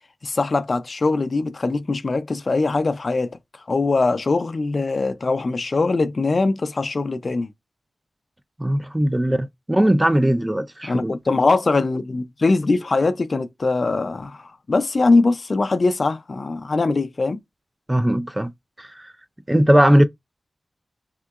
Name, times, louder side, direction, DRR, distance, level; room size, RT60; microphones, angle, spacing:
voice 1, 0.2-3.4 3.7-7.5 10.8-17.4, left 3 dB, 50° left, 0.4 m, -21 dB
voice 2, 8.6-11.1 17.9-18.5 18.8-19.1 19.5-20.0, right 1 dB, 15° right, 0.4 m, -19 dB
3.7 x 2.7 x 2.3 m
wide cardioid pair, 80°, 0 cm